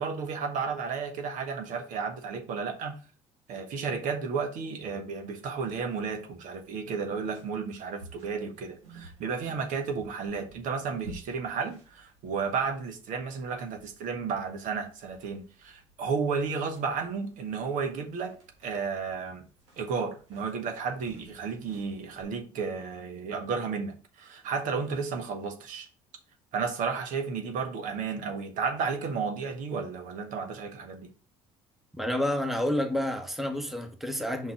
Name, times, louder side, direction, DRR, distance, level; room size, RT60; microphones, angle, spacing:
voice 1, 0.0-3.0 3.5-18.4 18.6-19.5 19.8-25.9 26.5-31.1, right 5 dB, 60° right, 1.4 m, -33 dB
sound 1, 5.1-22.2, right 2 dB, 90° right, 2.4 m, -54 dB
voice 2, 32.0-34.5, left 1 dB, ahead, 1.3 m, -29 dB
5.3 x 4.0 x 6.0 m
hypercardioid pair, 70°, 14 cm